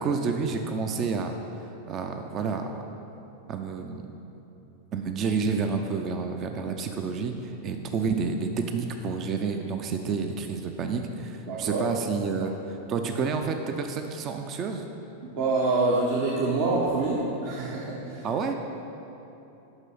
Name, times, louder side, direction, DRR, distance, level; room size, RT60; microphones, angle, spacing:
voice 1, 0.0-1.4 1.9-2.8 3.5-4.1 4.9-14.8 18.2-18.5, right 5 dB, 30° right, 5 dB, 0.5 m, -29 dB
voice 2, 11.4-11.9 15.2-18.3, right 3 dB, 50° right, -5 dB, 1.1 m, -26 dB
8.1 x 6.0 x 5.5 m, 3.0 s
figure-of-eight pair, 90°, 0 cm